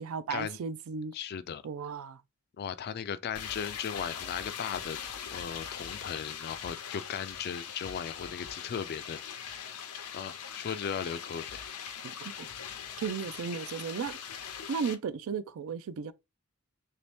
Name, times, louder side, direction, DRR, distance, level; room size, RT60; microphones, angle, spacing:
voice 1, 0.0-1.1 1.6-2.2 12.0-12.5 13.0-14.2 14.7-16.1, right 6 dB, 65° right, 0.4 m, -35 dB
voice 2, 1.1-1.6 2.6-9.7 10.1-11.6, left 7 dB, 45° left, 0.3 m, -37 dB
sound 1, 3.3-14.9, left 8 dB, 90° left, 0.6 m, -41 dB
3.0 x 2.7 x 3.4 m
head